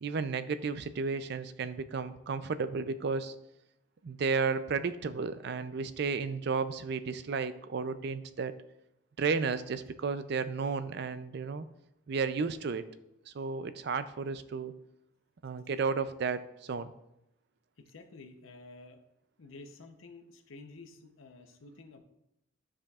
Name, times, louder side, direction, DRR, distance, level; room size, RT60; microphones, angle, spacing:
voice 1, 0.0-3.3 4.0-8.5 9.2-11.7 12.1-12.8 13.3-14.7 15.4-16.9, right 5 dB, 55° right, 13 dB, 0.4 m, -33 dB
voice 2, 17.9-19.0 19.4-22.0, left 3 dB, 85° left, 5 dB, 0.8 m, -51 dB
11.5 x 5.0 x 2.4 m, 0.84 s
head